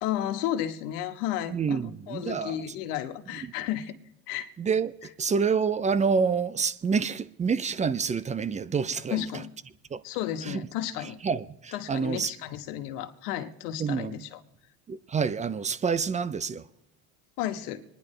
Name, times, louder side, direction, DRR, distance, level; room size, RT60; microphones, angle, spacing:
voice 1, 0.0-4.0 4.3-4.5 9.1-9.5 10.0-11.2 11.7-14.4 17.4-17.8, left 11 dB, 80° left, 1.4 m, -33 dB
voice 2, 1.5-2.6 3.4-3.5 4.6-9.4 9.9-10.0 10.4-10.6 11.2-12.3 13.8-14.1 14.9-16.7, right 5 dB, 15° right, 0.4 m, -28 dB
24.5 x 10.5 x 3.2 m
supercardioid pair, 95°, 45 cm